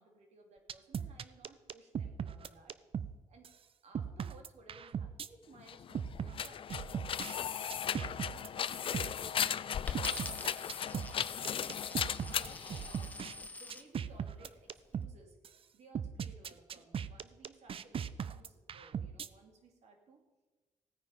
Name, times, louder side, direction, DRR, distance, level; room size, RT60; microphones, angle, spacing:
voice 1, 0.0-2.8 3.3-3.5 3.8-11.7 12.3-15.4 15.7-20.2, right 3 dB, 70° right, 3 dB, 2.8 m, -60 dB
sound 1, 0.7-3.1 3.4-3.5 3.9-5.3 5.9-7.3 7.7-8.5 8.9-9.1 9.9-13.3 13.7-15.1 15.4-15.5 15.9-19.3, right 8 dB, 50° right, 0.6 m, -39 dB
sound 2, 5.6-13.5, left 8 dB, 50° left, 0.4 m, -37 dB
Coin (dropping), 9.9-13.9 14.6-15.0, left 1 dB, 15° left, 1.2 m, -47 dB
16.5 x 9.4 x 5.4 m, 1.2 s
cardioid pair, 85°, 12 cm